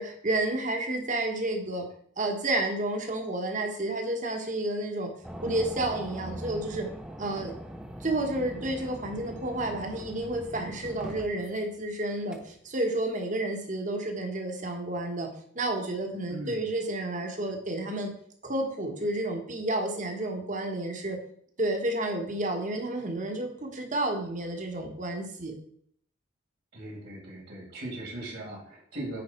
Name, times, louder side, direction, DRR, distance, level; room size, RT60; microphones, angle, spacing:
voice 1, 0.0-1.8 2.2-5.1 5.4-6.9 7.2-7.5 8.0-15.3 15.5-18.1 18.4-21.2 21.6-25.5, right 1 dB, 40° right, 3 dB, 1.4 m, -31 dB
sound 1, 5.2-11.6 12.3-12.4, equal, 5° right, 0.9 m, -41 dB
voice 2, 16.3-16.7 26.7-29.2, right 1 dB, 65° right, -2 dB, 2.5 m, -39 dB
9.7 x 4.7 x 4.5 m, 0.65 s
head